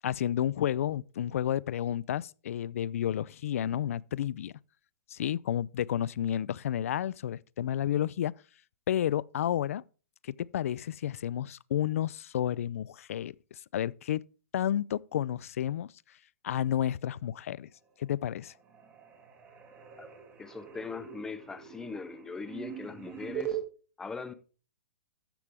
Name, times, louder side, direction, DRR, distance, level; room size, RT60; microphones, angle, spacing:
voice 1, 0.0-4.5 5.1-8.3 8.9-9.8 10.2-13.3 13.7-14.2 14.5-15.9 16.4-17.7 18.0-18.5, left 11 dB, 65° left, 0.4 m, -31 dB
sound 1, 17.6-18.2 18.4-23.6, right 11 dB, 15° right, 2.0 m, -42 dB
voice 2, 20.4-23.6 24.0-24.3, left 4 dB, 5° left, 0.6 m, -40 dB
13.0 x 7.4 x 3.5 m
hypercardioid pair, 165°, 8 cm